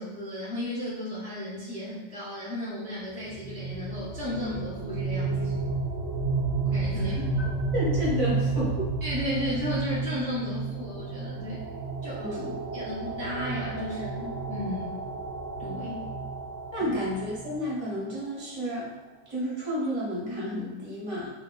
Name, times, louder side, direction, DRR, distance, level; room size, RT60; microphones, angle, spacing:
voice 1, 0.0-5.5 6.6-7.3 9.0-11.7 12.0-12.2 12.7-15.0 15.6-16.2 16.8-16.9, left 1 dB, 10° left, -9 dB, 0.3 m, -34 dB
sound 1, 3.3-18.1, right 3 dB, 65° right, 0.6 m, -31 dB
voice 2, 7.7-8.9 12.2-12.5 16.7-18.9 19.3-21.3, equal, 25° right, -7 dB, 0.7 m, -31 dB
2.7 x 2.2 x 3.9 m, 1.1 s
omnidirectional pair, 1.8 m